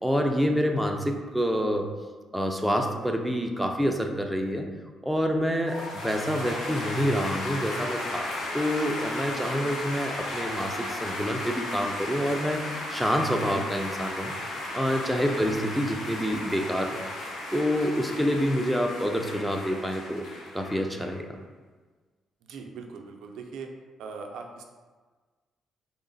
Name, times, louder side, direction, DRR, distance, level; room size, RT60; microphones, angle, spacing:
voice 1, 0.0-1.9 2.3-4.7 5.0-14.4 14.7-17.0 17.5-20.3 20.5-21.4, equal, ahead, 2 dB, 0.4 m, -27 dB
sound 1, 5.6-21.2, left 1 dB, 90° left, 0.7 m, -35 dB
voice 2, 22.4-23.7 24.0-24.6, right 5 dB, 85° right, 3 dB, 0.4 m, -41 dB
3.7 x 2.1 x 3.9 m, 1.4 s
cardioid pair, 90°, 0 cm